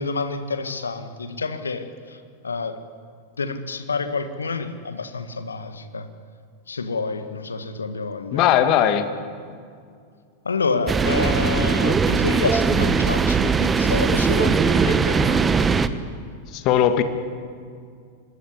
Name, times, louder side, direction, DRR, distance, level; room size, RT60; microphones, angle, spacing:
voice 1, 0.0-2.8 3.4-6.1 6.7-8.4 10.4-15.7, left 4 dB, 75° left, 9 dB, 1.7 m, -28 dB
voice 2, 8.3-9.1 16.5-17.0, left 10 dB, 40° left, 9 dB, 2.0 m, -18 dB
sound 1, 10.9-15.9, right 5 dB, 15° right, 1.1 m, -20 dB
25.5 x 20.5 x 9.9 m, 2.2 s
figure-of-eight pair, 90°, 0 cm